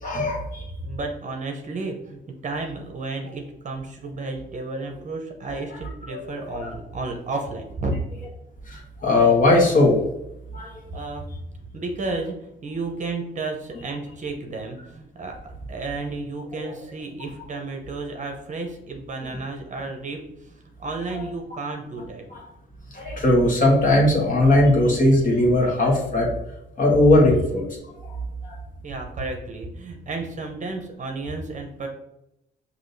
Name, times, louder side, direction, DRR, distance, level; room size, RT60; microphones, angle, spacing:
voice 1, 0.0-0.6 6.1-6.7 8.7-10.0 10.5-10.7 16.6-16.7 21.1-21.2 22.9-26.3 26.8-27.6 28.0-28.1 28.4-28.6, left 1 dB, 40° left, -1 dB, 1.4 m, -19 dB
voice 2, 0.8-8.0 10.9-11.3 11.7-22.2 28.8-31.9, right 3 dB, 40° right, 3 dB, 0.8 m, -32 dB
6.0 x 2.8 x 2.7 m, 0.86 s
cardioid pair, 90°, 20 cm